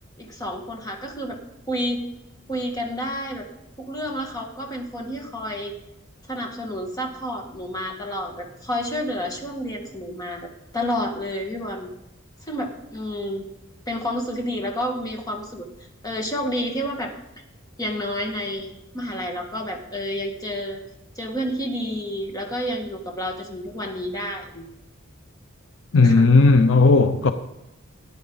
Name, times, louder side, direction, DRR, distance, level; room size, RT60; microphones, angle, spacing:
voice 1, 0.2-1.4 1.7-2.1 2.5-3.5 3.8-5.7 6.3-10.5 10.7-11.9 12.5-13.5 13.9-15.7 16.0-17.1 17.8-20.8 21.2-24.7 26.0-26.2, equal, 20° left, 1.8 m, -30 dB
voice 2, 25.9-27.3, left 3 dB, 70° left, 0.7 m, -15 dB
14.0 x 9.6 x 4.0 m
head